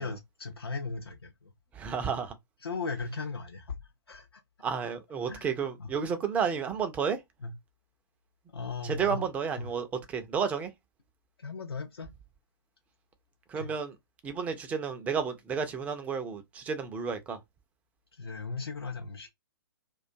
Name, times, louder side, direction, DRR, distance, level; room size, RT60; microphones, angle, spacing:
voice 1, 0.0-1.5 2.6-3.8 4.1-4.4 5.3-5.5 5.8-5.9 7.4-7.5 8.5-9.3 9.6-9.7 11.4-12.1 13.6-13.7 18.1-19.3, left 4 dB, 75° left, 0.5 m, -37 dB
voice 2, 1.8-2.3 4.6-7.2 8.8-10.7 13.5-13.9 14.2-17.4, right 6 dB, 10° right, 0.4 m, -31 dB
2.4 x 2.2 x 2.5 m
figure-of-eight pair, 120°, 13 cm